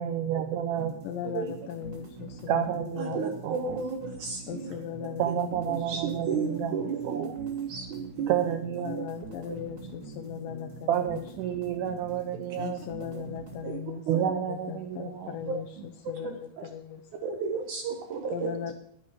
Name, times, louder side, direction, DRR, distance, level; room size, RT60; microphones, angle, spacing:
voice 1, 0.0-0.9 2.5-3.8 5.2-6.8 7.0-7.3 8.3-8.9 10.9-12.8 14.1-15.4, right 10 dB, 85° right, 7 dB, 1.8 m, -30 dB
sound 1, 0.8-13.7, right 2 dB, 35° right, 2.1 m, -45 dB
voice 2, 1.0-2.7 2.9-3.3 4.5-5.3 5.6-5.9 6.1-6.9 8.8-11.2 11.5-11.6 12.5-17.2 18.3-18.7, left 8 dB, 75° left, 6 dB, 2.1 m, -38 dB
voice 3, 3.0-4.7 5.7-8.4 8.9-9.1 9.5-9.6 13.6-13.8 14.1-14.3 16.6-16.7 17.2-18.5, right 6 dB, 70° right, 5 dB, 1.9 m, -33 dB
10.0 x 9.7 x 6.0 m, 0.67 s
omnidirectional pair, 4.6 m